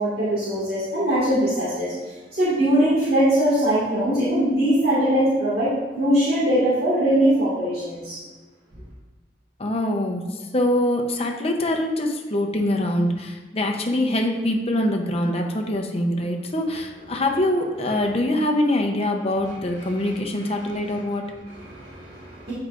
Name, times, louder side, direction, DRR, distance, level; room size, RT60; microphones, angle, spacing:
voice 1, 0.0-1.9 2.3-8.2 19.8-20.1 21.5-22.5, right 1 dB, 60° right, -10 dB, 1.9 m, -21 dB
voice 2, 9.6-21.3, left 1 dB, 35° left, 2 dB, 0.7 m, -24 dB
8.4 x 4.8 x 2.5 m, 1.3 s
head